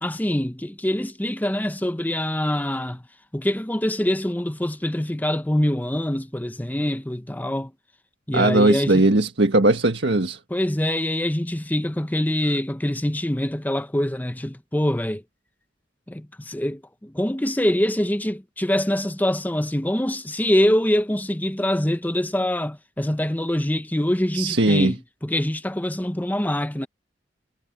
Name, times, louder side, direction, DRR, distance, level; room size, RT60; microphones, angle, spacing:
voice 1, 0.0-3.0 3.3-7.7 8.3-9.1 10.5-15.2 16.1-26.9, left 1 dB, 10° left, 0.9 m, -24 dB
voice 2, 8.3-10.4 24.3-24.9, right 2 dB, 85° right, 1.6 m, -19 dB
head